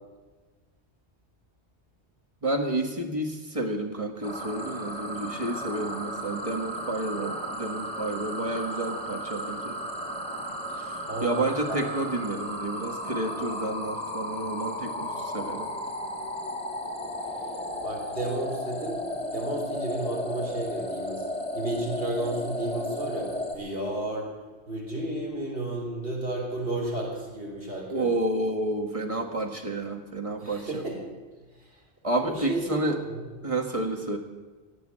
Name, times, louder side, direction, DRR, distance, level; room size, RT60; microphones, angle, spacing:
voice 1, 2.4-9.8 10.8-15.7 27.9-30.8 32.0-33.0 33.4-34.2, right 2 dB, 30° right, 4 dB, 1.7 m, -30 dB
sound 1, 4.2-23.5, equal, 5° left, 2.1 m, -34 dB
voice 2, 10.7-11.8 17.3-17.5 17.8-21.2 21.5-24.3 24.7-28.1 30.4-31.0 31.6-31.8 32.2-32.7 33.1-33.2, right 1 dB, 55° right, -1 dB, 3.9 m, -33 dB
17.5 x 7.8 x 8.7 m, 1.3 s
omnidirectional pair, 1.2 m